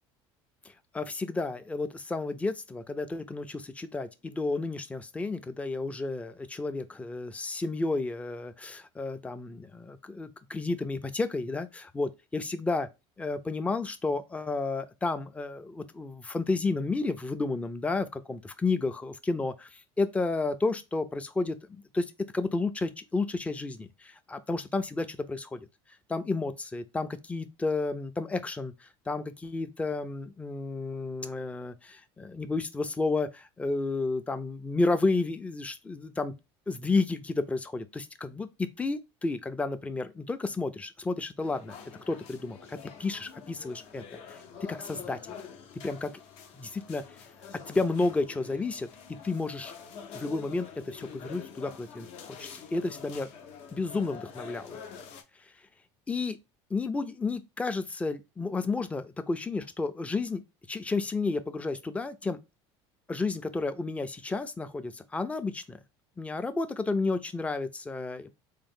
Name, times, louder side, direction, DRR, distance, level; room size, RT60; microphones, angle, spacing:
voice 1, 0.9-12.9 13.2-22.1 22.3-25.7 26.1-36.3 36.7-41.8 42.1-44.0 44.3-44.4 44.7-45.2 45.8-46.1 46.6-47.0 47.7-48.9 49.2-49.7 50.1-52.1 52.4-53.3 53.7-54.8 56.1-56.4 56.7-60.4 60.7-62.4 63.1-65.8 66.2-68.3, left 3 dB, 10° left, 0.4 m, -31 dB
sound 1, 41.4-55.2, left 6 dB, 60° left, 0.6 m, -46 dB
3.6 x 2.0 x 3.5 m
supercardioid pair, 105°, 13 cm